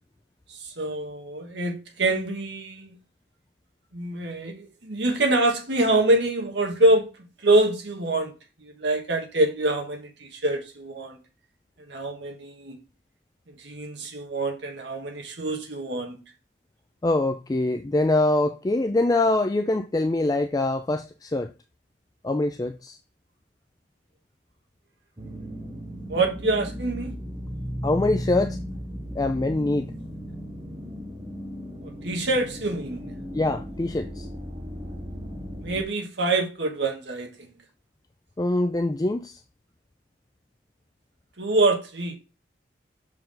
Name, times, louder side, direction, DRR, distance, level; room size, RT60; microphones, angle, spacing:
voice 1, 0.5-2.9 3.9-7.1 7.4-8.3 8.6-11.2 11.9-12.8 13.5-16.2 26.1-27.1 31.8-33.2 35.6-37.5 41.4-42.2, right 2 dB, 70° right, 1.5 m, -25 dB
voice 2, 17.0-21.5 22.2-23.0 27.8-28.6 29.2-29.9 33.3-34.3 38.4-39.4, left 2 dB, 20° left, 0.3 m, -24 dB
sound 1, 25.2-35.8, equal, 25° right, 1.2 m, -36 dB
6.4 x 4.7 x 3.8 m
head